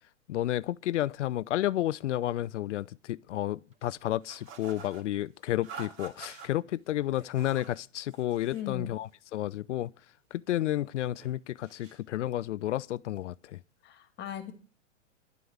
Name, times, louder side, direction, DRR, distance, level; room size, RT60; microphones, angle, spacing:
voice 1, 0.3-9.9 10.3-13.6, left 13 dB, 70° left, 0.5 m, -31 dB
sound 1, 4.3-5.0 5.6-6.5 7.1-7.8 8.1-8.7, right 6 dB, 35° right, 2.0 m, -46 dB
sound 2, 6.1-13.3, right 3 dB, 75° right, 4.2 m, -63 dB
voice 2, 8.5-8.9 13.8-14.5, left 9 dB, 30° left, 2.0 m, -38 dB
11.0 x 7.8 x 7.2 m
hypercardioid pair, 115°, 38 cm